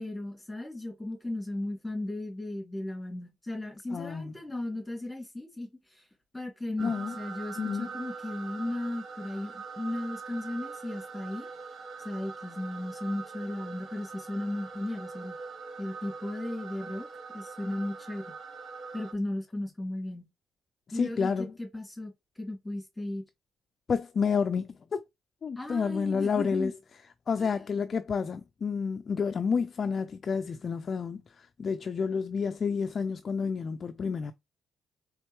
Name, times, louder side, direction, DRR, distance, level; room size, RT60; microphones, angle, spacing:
voice 1, 0.0-6.1 6.3-11.5 12.0-15.4 15.8-17.1 17.3-18.2 18.9-20.3 20.9-22.1 22.4-23.2 25.6-26.7 27.4-27.7, left 1 dB, 10° left, 2.6 m, -36 dB
voice 2, 3.9-4.3 6.8-7.1 7.6-7.9 20.9-21.5 23.9-25.0 25.4-26.7 27.3-34.3, left 5 dB, 45° left, 0.4 m, -30 dB
sound 1, 6.8-19.1, right 5 dB, 50° right, 1.0 m, -43 dB
4.3 x 3.5 x 3.0 m
cardioid pair, 90°, 0 cm